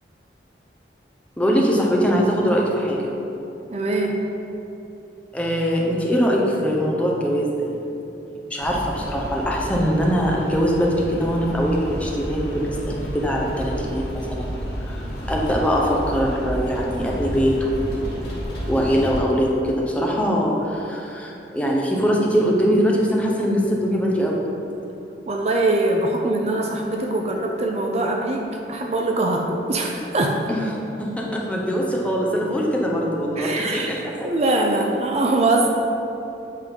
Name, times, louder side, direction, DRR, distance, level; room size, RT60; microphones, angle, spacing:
voice 1, 1.4-3.0 5.3-7.9 8.5-14.6 15.0-18.2 18.7-24.4 30.5-30.7 31.0-34.3 34.7-34.8, equal, 5° left, -2 dB, 0.8 m, -22 dB
voice 2, 3.7-4.2 25.3-30.4 33.4-33.9 34.2-35.7, right 2 dB, 35° right, 1 dB, 0.5 m, -22 dB
sound 1, 8.6-19.2, equal, 65° left, 1.5 m, -31 dB
8.3 x 3.7 x 5.3 m, 2.9 s
head